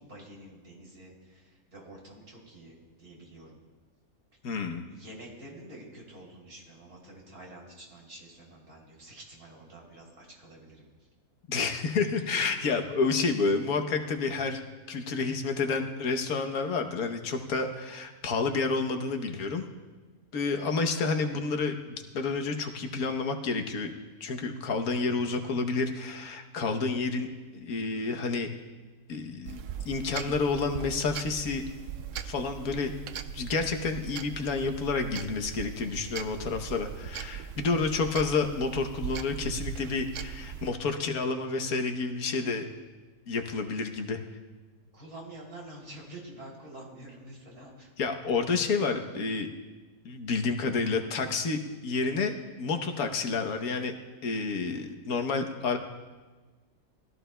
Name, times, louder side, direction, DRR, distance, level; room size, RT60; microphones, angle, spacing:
voice 1, 0.0-3.6 4.5-10.9 12.3-12.5 44.9-47.9, right 1 dB, 80° right, -3 dB, 3.8 m, -48 dB
voice 2, 4.4-4.8 11.5-14.6 14.9-19.6 20.3-28.5 29.1-31.7 32.2-32.9 33.3-42.7 43.3-44.2 48.0-49.5 50.0-52.3 52.6-53.9 54.2-55.8, left 4 dB, 75° left, 5 dB, 1.5 m, -30 dB
sound 1, 29.5-40.7, right 8 dB, 65° right, 0.9 m, -39 dB
21.0 x 14.0 x 2.2 m, 1.3 s
omnidirectional pair, 1.6 m